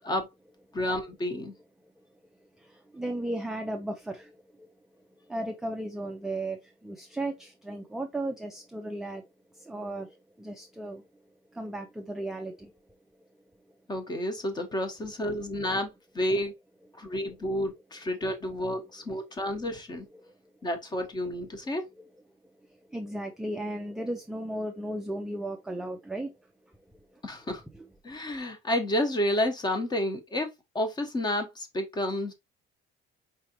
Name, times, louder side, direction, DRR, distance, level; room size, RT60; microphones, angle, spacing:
voice 1, 0.7-1.5 13.9-16.5 17.0-20.1 20.6-21.8 27.2-27.6 28.0-30.5 30.7-32.3, left 1 dB, 20° left, 0.9 m, -30 dB
voice 2, 2.4-4.7 5.0-11.2 11.5-12.7 13.2-13.3 17.0-17.4 20.1-20.5 22.0-22.1 22.4-26.4 26.7-26.8 27.1-27.2 27.7-27.8, right 1 dB, ahead, 0.3 m, -36 dB
4.8 x 3.2 x 2.8 m
cardioid pair, 160°, 21 cm